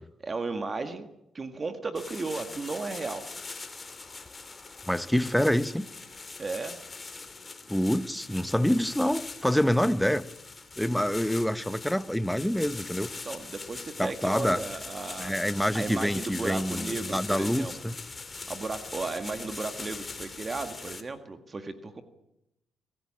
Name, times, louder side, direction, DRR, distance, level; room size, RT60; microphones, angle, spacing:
voice 1, 0.2-1.1 1.3-3.2 6.4-6.8 13.2-15.3 15.7-17.9 18.5-22.0, right 3 dB, 30° right, 8 dB, 1.7 m, -35 dB
sound 1, 1.9-21.0, left 3 dB, 25° left, 2.5 m, -41 dB
voice 2, 4.9-5.9 7.7-10.2 10.8-13.1 14.0-14.6 15.2-17.9, equal, 5° left, 14 dB, 0.9 m, -26 dB
24.5 x 15.5 x 8.8 m, 0.86 s
cardioid pair, 90°, 0 cm